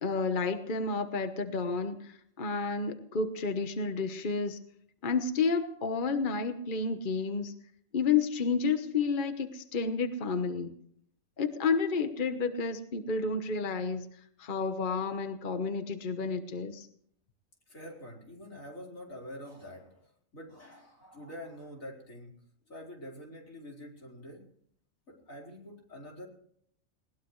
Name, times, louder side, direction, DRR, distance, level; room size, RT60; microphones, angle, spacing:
voice 1, 0.0-4.6 5.0-7.5 7.9-10.7 11.4-14.0 14.4-16.9, left 4 dB, 40° left, 8 dB, 1.3 m, -30 dB
voice 2, 17.7-22.4 22.7-24.4 25.1-26.3, left 1 dB, 90° left, -2 dB, 5.0 m, -46 dB
20.5 x 19.5 x 3.2 m, 0.66 s
omnidirectional pair, 1.4 m